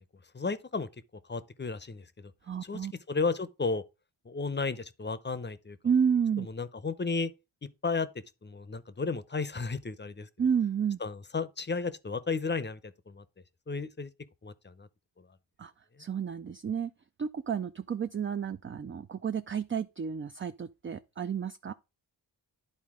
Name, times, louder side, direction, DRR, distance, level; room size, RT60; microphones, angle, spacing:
voice 1, 0.3-0.9 1.3-2.3 2.6-3.8 4.3-5.8 6.4-7.3 7.8-8.1 8.4-10.3 11.0-13.2 13.7-14.1 14.4-14.9, left 4 dB, 25° left, 0.6 m, -33 dB
voice 2, 2.5-2.9 5.8-6.5 10.4-11.0 15.6-15.7 16.0-16.9 17.2-21.7, right 7 dB, 30° right, 0.4 m, -30 dB
10.5 x 4.1 x 3.6 m
cardioid pair, 55°, 45 cm